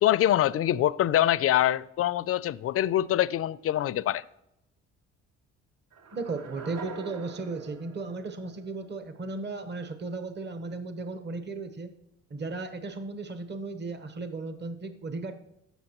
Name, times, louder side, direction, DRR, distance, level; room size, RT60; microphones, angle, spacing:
voice 1, 0.0-4.2, left 12 dB, 50° left, 0.4 m, -24 dB
sound 1, 5.9-9.0, right 4 dB, 60° right, 1.1 m, -44 dB
voice 2, 6.1-11.9 12.3-15.4, right 3 dB, 35° right, 1.0 m, -35 dB
15.0 x 6.2 x 3.0 m
cardioid pair, 90°, 30 cm